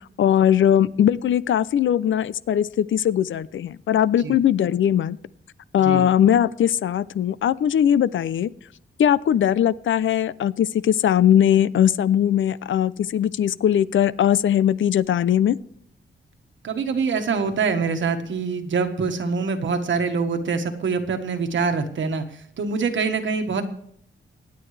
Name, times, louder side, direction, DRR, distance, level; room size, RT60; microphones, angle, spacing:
voice 1, 0.2-5.2 5.7-8.5 9.0-15.6, left 10 dB, 70° left, 18 dB, 0.5 m, -20 dB
voice 2, 16.6-22.2 22.6-23.6, right 5 dB, 70° right, 5 dB, 1.4 m, -24 dB
25.0 x 9.1 x 3.3 m, 0.67 s
wide cardioid pair, 160°, 21 cm